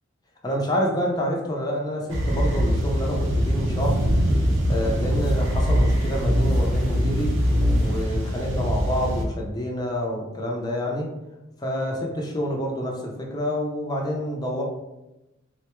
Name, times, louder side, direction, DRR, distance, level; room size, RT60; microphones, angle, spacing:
voice 1, 0.4-4.0 4.7-7.3 7.8-11.1 11.6-14.6, equal, 20° left, -1 dB, 0.5 m, -28 dB
sound 1, 2.1-9.2, equal, 70° right, 0.6 m, -24 dB
sound 2, 4.1-8.0, equal, ahead, 0.9 m, -24 dB
3.9 x 2.2 x 2.9 m, 0.97 s
head